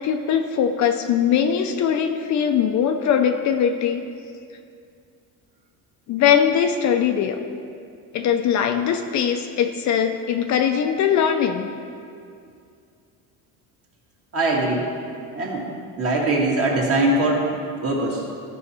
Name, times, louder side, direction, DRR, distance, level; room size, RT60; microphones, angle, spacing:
voice 1, 0.0-4.0 6.1-7.4 8.1-11.7, left 8 dB, 50° left, 6 dB, 0.6 m, -21 dB
voice 2, 14.3-14.9 15.3-15.6 16.0-17.4 17.8-18.2, right 2 dB, 40° right, -3 dB, 2.0 m, -21 dB
14.0 x 5.7 x 4.3 m, 2.4 s
cardioid pair, 140°, 37 cm